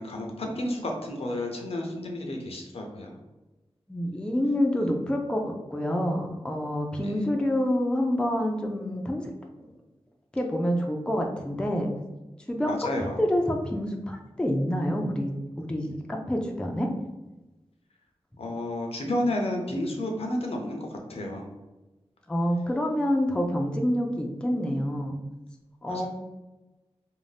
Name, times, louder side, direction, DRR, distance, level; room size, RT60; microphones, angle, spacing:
voice 1, 0.0-3.2 7.0-7.2 12.7-13.2 18.4-21.5 25.9-26.1, left 1 dB, 70° left, 1 dB, 0.5 m, -31 dB
voice 2, 3.9-9.3 10.3-11.9 12.5-12.8 13.2-15.3 15.6-16.9 22.3-25.2 25.8-26.1, equal, 10° left, 1 dB, 0.3 m, -27 dB
2.6 x 2.0 x 3.2 m, 1.1 s
wide cardioid pair, 95°, 10 cm